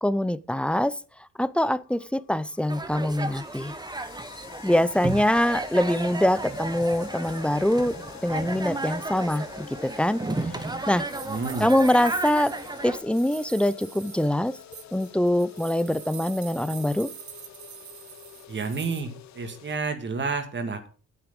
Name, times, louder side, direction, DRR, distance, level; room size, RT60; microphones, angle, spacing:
voice 1, 0.0-1.0 1.4-3.7 4.6-7.9 8.2-10.2 10.9-11.0 11.6-12.5 12.8-14.6 14.9-17.1, left 1 dB, 5° left, 0.5 m, -24 dB
sound 1, 1.8-19.8, left 11 dB, 65° left, 0.9 m, -47 dB
sound 2, 2.7-13.0, right 2 dB, 15° right, 1.1 m, -34 dB
sound 3, 10.1-19.0, right 9 dB, 70° right, 1.5 m, -45 dB
voice 2, 11.3-11.7 18.5-20.9, right 4 dB, 40° right, 2.0 m, -30 dB
9.9 x 8.0 x 5.2 m
cardioid pair, 90°, 30 cm